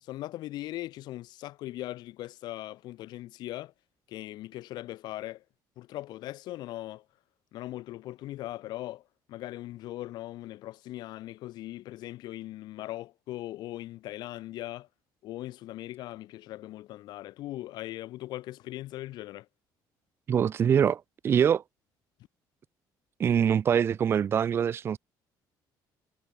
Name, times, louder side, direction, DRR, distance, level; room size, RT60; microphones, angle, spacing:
voice 1, 0.0-3.7 4.1-5.4 5.8-7.0 7.5-9.0 9.3-14.9 15.2-19.5, left 15 dB, 65° left, 1.0 m, -39 dB
voice 2, 20.3-21.6 23.2-25.0, right 8 dB, 30° right, 0.6 m, -24 dB
cardioid pair, 165°, 8 cm